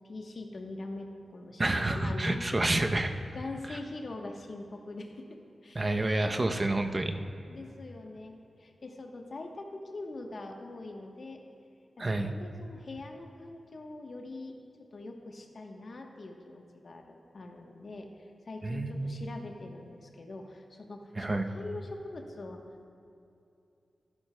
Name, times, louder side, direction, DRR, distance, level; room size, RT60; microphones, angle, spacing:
voice 1, 0.0-1.6 1.9-2.5 3.3-5.8 7.2-11.4 12.0-14.6 14.9-22.9, left 2 dB, 60° left, 3 dB, 1.0 m, -43 dB
voice 2, 1.6-3.1 5.8-7.1 12.0-12.3 18.6-19.2 21.2-21.5, right 2 dB, 35° right, 5 dB, 0.7 m, -28 dB
13.5 x 11.5 x 2.2 m, 2.6 s
cardioid pair, 45°, 0 cm